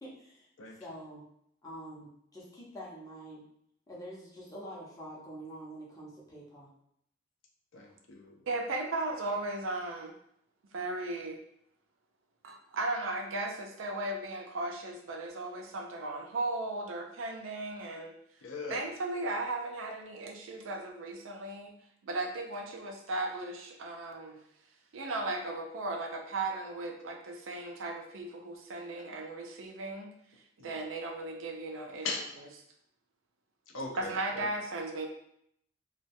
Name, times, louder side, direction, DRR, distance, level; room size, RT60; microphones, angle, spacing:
voice 1, 0.0-0.5 0.8-1.2 1.6-3.4 3.9-6.7, equal, 20° left, -5 dB, 0.6 m, -46 dB
voice 2, 7.7-8.4 18.4-18.8 30.6-30.8 32.0-32.2 33.7-34.5, left 3 dB, 75° left, 2 dB, 0.5 m, -39 dB
voice 3, 8.5-10.1 10.7-11.4 12.4-18.1 18.7-21.7 22.0-24.4 24.9-30.1 30.6-32.1 34.0-35.1, right 2 dB, 85° right, 3 dB, 0.5 m, -36 dB
2.2 x 2.2 x 2.6 m, 0.71 s
head